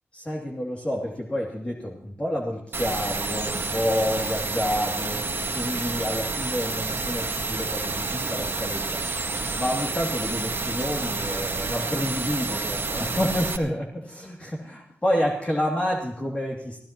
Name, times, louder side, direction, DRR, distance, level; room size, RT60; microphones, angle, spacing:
voice 1, 0.1-5.2 5.5-9.0 9.5-16.8, equal, 25° left, -2 dB, 2.6 m, -29 dB
sound 1, 2.7-13.6, right 3 dB, 50° right, 1.7 m, -29 dB
25.0 x 14.5 x 3.0 m, 0.65 s
cardioid pair, 55°, 5 cm